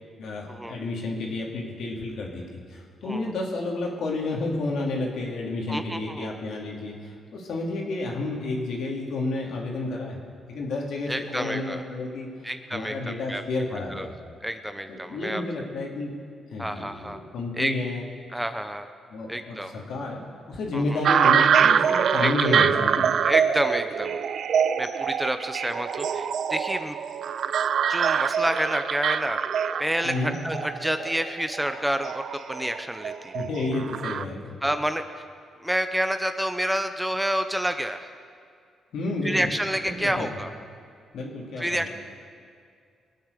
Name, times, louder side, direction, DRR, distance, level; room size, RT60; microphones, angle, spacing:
voice 1, 0.2-10.2 10.5-14.1 14.9-16.1 16.5-18.0 19.1-23.1 30.0-30.3 33.3-34.5 38.9-39.5 39.9-40.3 41.1-41.9, left 2 dB, 75° left, -1 dB, 3.0 m, -31 dB
voice 2, 5.7-6.3 11.1-11.8 12.4-13.4 13.7-14.1 14.4-15.4 16.6-17.2 17.6-17.8 18.3-18.9 19.3-19.7 20.7-21.0 22.2-22.7 23.2-24.2 24.8-27.0 27.9-29.4 29.8-33.4 34.6-35.0 35.6-38.1 39.2-40.5 41.6-41.9, equal, 5° right, 8 dB, 0.8 m, -29 dB
sound 1, 21.0-34.2, right 7 dB, 65° right, 0.5 m, -24 dB
21.5 x 8.7 x 6.8 m, 2.3 s
cardioid pair, 90°, 0 cm